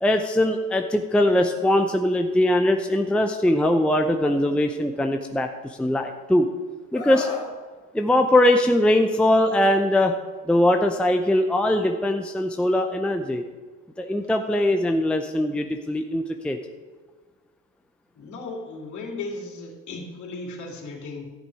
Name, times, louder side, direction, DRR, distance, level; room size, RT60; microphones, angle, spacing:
voice 1, 0.0-6.5 6.9-7.3 7.9-10.2 10.4-13.4 14.0-16.6, left 1 dB, 5° left, 5 dB, 0.6 m, -21 dB
Screaming, 6.9-7.5 9.0-9.2, left 3 dB, 20° left, 3.0 m, -33 dB
voice 2, 18.1-21.3, left 3 dB, 50° left, 0 dB, 3.1 m, -36 dB
13.0 x 7.4 x 4.8 m, 1.4 s
supercardioid pair, 100°, 37 cm